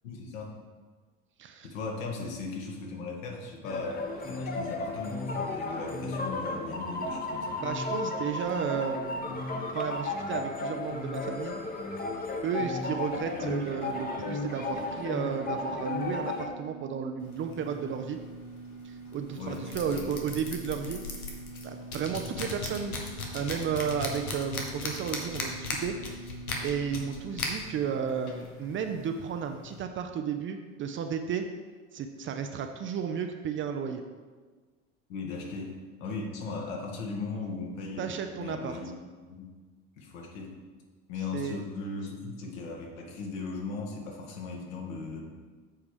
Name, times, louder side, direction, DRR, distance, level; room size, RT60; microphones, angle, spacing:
voice 1, 0.0-0.5 1.6-7.6 13.3-13.6 19.4-20.1 35.1-38.9 39.2-39.6 40.0-40.6 41.1-45.2, left 3 dB, 65° left, 0 dB, 1.8 m, -38 dB
sound 1, 3.6-16.5, left 2 dB, 20° left, 1.0 m, -34 dB
voice 2, 7.6-9.4 9.7-11.6 12.4-18.2 18.8-21.0 21.6-23.0 23.3-26.3 26.6-31.5 31.9-34.0 38.0-38.8 41.3-41.6, right 7 dB, 30° right, 6 dB, 0.5 m, -33 dB
sound 2, 11.0-27.2, right 5 dB, 65° right, 1.1 m, -47 dB
sound 3, 17.2-29.8, left 3 dB, 85° left, 1.2 m, -39 dB
7.5 x 4.7 x 5.0 m, 1.4 s
hypercardioid pair, 75°, 42 cm